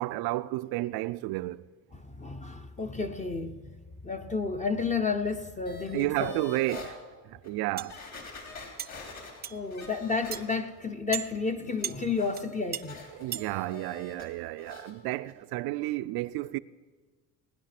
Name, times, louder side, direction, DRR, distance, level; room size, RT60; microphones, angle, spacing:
voice 1, 0.0-1.6 5.9-7.0 7.2-8.0 13.1-16.6, right 17 dB, 75° right, 0.6 m, -32 dB
voice 2, 1.9-3.7 4.0-6.4 9.5-13.1, left 4 dB, 20° left, 0.8 m, -31 dB
sound 1, 5.7-6.9 7.4-7.5 7.9-10.9 11.2-14.3 14.6-14.9 15.3-15.4, left 4 dB, 45° left, 3.6 m, -46 dB
sound 2, 7.8-7.9 8.8-8.9 9.4-9.6 10.3-10.4 11.1-11.3 11.8-12.0 12.3-12.4 12.7-12.8 13.3-13.5, right 9 dB, 25° right, 0.4 m, -34 dB
19.0 x 10.0 x 5.9 m
cardioid pair, 110°, 37 cm